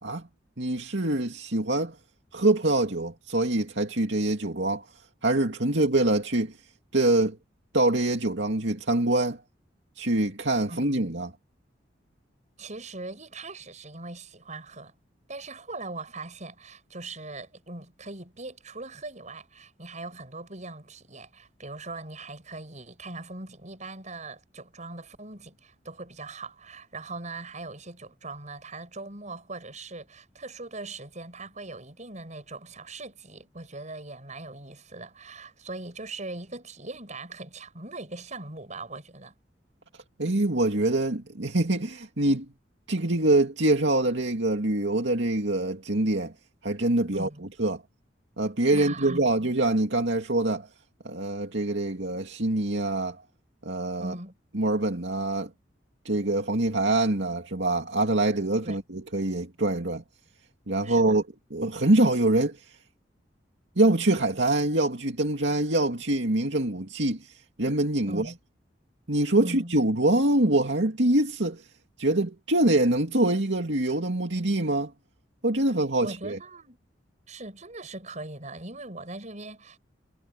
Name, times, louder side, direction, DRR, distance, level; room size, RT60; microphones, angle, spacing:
voice 1, 0.6-2.0 2.3-4.9 5.2-6.6 6.9-7.4 7.7-9.4 10.0-11.3 40.2-42.5 42.9-46.3 46.6-47.3 47.6-47.8 48.4-50.7 51.0-53.2 53.6-54.1 54.5-55.5 56.0-60.0 60.7-61.2 61.5-62.8 63.8-68.3 69.1-71.7 72.0-74.9 75.4-76.4, right 2 dB, 70° right, 2.5 m, -25 dB
voice 2, 10.7-11.1 12.6-14.9 15.3-39.3 47.1-47.5 48.7-49.2 54.0-54.4 58.6-58.8 60.8-61.2 68.1-68.4 69.4-69.8 76.0-76.8 77.3-79.8, right 2 dB, 40° right, 7.5 m, -40 dB
head